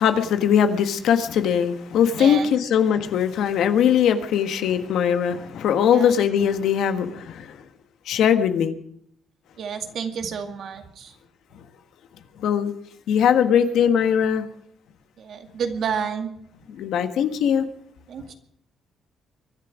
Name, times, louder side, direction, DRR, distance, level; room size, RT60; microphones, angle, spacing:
voice 1, 0.0-7.6 8.1-8.7 12.4-12.7 13.1-14.4 16.7-17.7, left 8 dB, 80° left, 8 dB, 1.5 m, -20 dB
voice 2, 2.2-2.5 5.9-6.1 9.6-11.1 15.2-16.3 18.1-18.3, right 6 dB, 65° right, 5 dB, 2.2 m, -30 dB
23.5 x 11.0 x 5.1 m, 0.67 s
cardioid pair, 90°, 0 cm